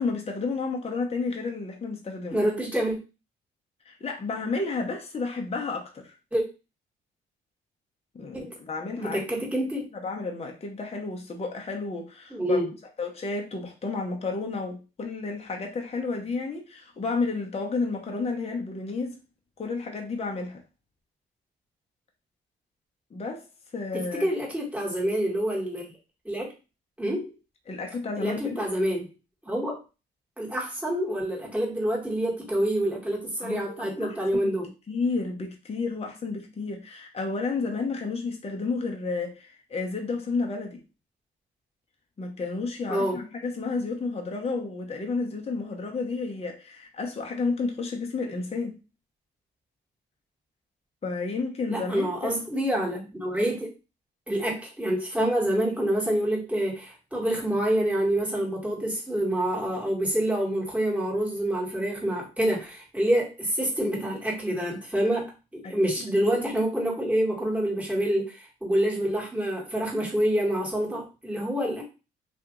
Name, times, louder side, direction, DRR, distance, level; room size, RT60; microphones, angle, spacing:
voice 1, 0.0-2.5 3.8-6.1 8.1-9.2 9.9-12.6 13.0-19.2 19.6-20.6 23.1-23.4 23.7-24.3 27.7-28.7 33.4-34.6 34.9-40.8 42.2-48.8 51.0-52.3 65.6-65.8 66.3-66.4, left 4 dB, 30° left, 0.8 m, -31 dB
voice 2, 2.3-3.0 6.3-6.4 8.3-8.5 9.0-9.9 12.3-12.7 24.2-25.8 26.3-26.5 27.0-27.3 28.2-29.1 29.4-29.8 30.4-34.7 42.9-43.2 51.7-53.7 54.3-71.8, right 1 dB, 5° right, 1.7 m, -27 dB
2.8 x 2.6 x 3.7 m
cardioid pair, 90°, 20 cm